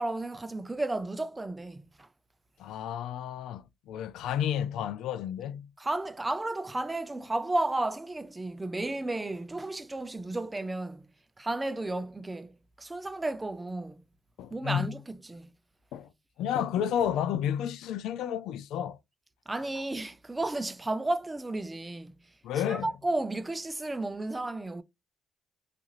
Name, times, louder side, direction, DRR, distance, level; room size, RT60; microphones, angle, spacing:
voice 1, 0.0-2.1 5.8-11.1 11.4-14.0 14.5-15.5 19.5-22.2 22.6-24.8, right 2 dB, 15° right, 0.4 m, -33 dB
voice 2, 2.6-5.7 14.4-15.0 15.9-16.1 16.4-19.0 22.4-22.9, left 9 dB, 85° left, 0.3 m, -31 dB
2.4 x 2.4 x 2.9 m
cardioid pair, 90°, 0 cm